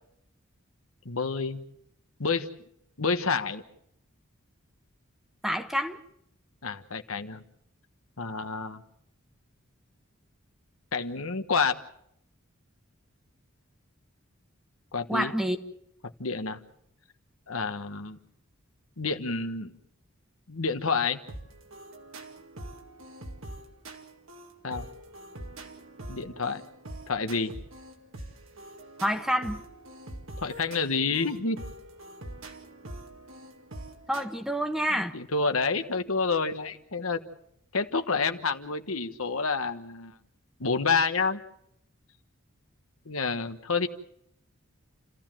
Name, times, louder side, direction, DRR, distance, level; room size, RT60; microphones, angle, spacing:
voice 1, 1.0-1.6 2.2-2.5 3.0-3.6 6.6-7.4 8.2-8.8 10.9-11.7 14.9-15.3 16.2-16.6 17.5-18.2 19.0-19.7 20.5-21.2 24.6-24.9 26.1-26.6 27.1-27.6 30.4-31.6 34.9-37.2 37.7-40.2 40.6-41.4 43.0-43.9, left 4 dB, 80° left, 1.4 m, -28 dB
voice 2, 5.4-6.0 15.1-15.6 29.0-29.6 34.1-35.1, equal, ahead, 1.3 m, -28 dB
sound 1, 21.3-34.2, right 1 dB, 70° right, 2.3 m, -44 dB
29.0 x 14.5 x 7.6 m
head